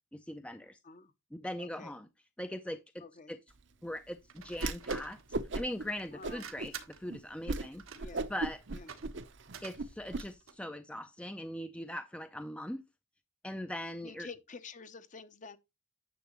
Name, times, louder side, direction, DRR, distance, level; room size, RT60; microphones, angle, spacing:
voice 1, 0.1-0.8 1.3-2.1 2.4-3.4 3.8-5.2 5.5-6.7 7.0-8.6 9.6-12.8 13.4-14.3, left 1 dB, 5° left, 0.5 m, -41 dB
voice 2, 1.6-1.9 3.0-3.3 6.1-6.5 8.0-8.3 8.7-8.9 14.0-15.6, left 4 dB, 35° left, 0.8 m, -49 dB
sound 1, 4.3-10.6, right 8 dB, 85° right, 1.4 m, -51 dB
Whoosh swoosh swish, 4.6-5.1 5.3-5.8 6.2-6.7 7.1-7.2 7.5-7.7 8.0-10.2, right 2 dB, 60° right, 0.8 m, -35 dB
10.0 x 7.0 x 3.1 m
head